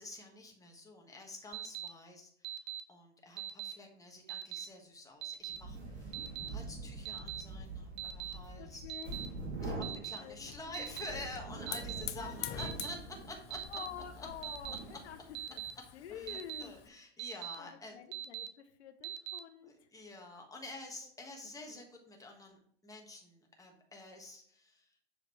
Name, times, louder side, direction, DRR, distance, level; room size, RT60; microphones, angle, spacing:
voice 1, 0.0-2.6 2.9-6.2 6.5-8.9 9.6-13.6 14.2-14.3 14.7-14.8 16.1-17.9 19.6-24.9, left 2 dB, 10° left, 1 dB, 1.4 m, -49 dB
Alarm, 1.5-1.9 2.4-2.8 3.4-3.7 4.3-4.6 5.2-5.6 6.1-6.5 7.1-7.4 8.0-8.3 8.9-9.3 9.8-10.2 10.7-11.1 11.7-12.0 12.6-12.9 13.5-13.9 14.4-14.8 15.3-15.7 16.3-16.6 17.2-17.6 18.1-18.5 19.0-19.4, right 12 dB, 35° right, 0.5 m, -41 dB
sound 1, 5.5-15.4, right 2 dB, 75° right, 2.5 m, -45 dB
voice 2, 8.6-9.2 10.1-10.9 12.1-12.7 13.7-15.2 15.5-15.6 15.9-16.7 17.6-19.9 21.7-21.8, left 9 dB, 80° left, 8 dB, 0.7 m, -48 dB
Hiss / Fire, 10.0-16.9, left 13 dB, 30° left, 0.4 m, -48 dB
6.5 x 5.0 x 3.2 m, 0.65 s
hypercardioid pair, 100°, 32 cm